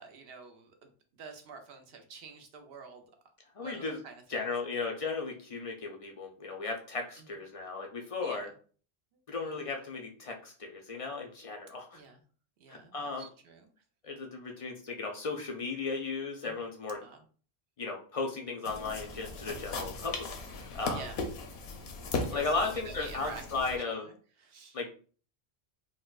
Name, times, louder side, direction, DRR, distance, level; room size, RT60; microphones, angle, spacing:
voice 1, 0.0-3.0 3.6-4.4 7.2-7.3 8.2-8.5 9.1-9.5 11.9-12.2 12.6-13.7 16.4-16.6 17.0-17.2 20.8-21.2 22.3-23.4 23.9-24.1 24.4-24.8, right 5 dB, 75° right, 5 dB, 0.8 m, -48 dB
voice 2, 3.6-4.0 4.3-8.5 9.3-12.0 12.7-13.3 14.0-17.0 17.8-21.0 22.3-24.1 24.7-25.0, left 4 dB, 50° left, 1 dB, 0.4 m, -36 dB
sound 1, 18.6-23.8, left 3 dB, 75° left, 0.9 m, -38 dB
4.0 x 2.2 x 2.3 m, 0.42 s
omnidirectional pair, 1.0 m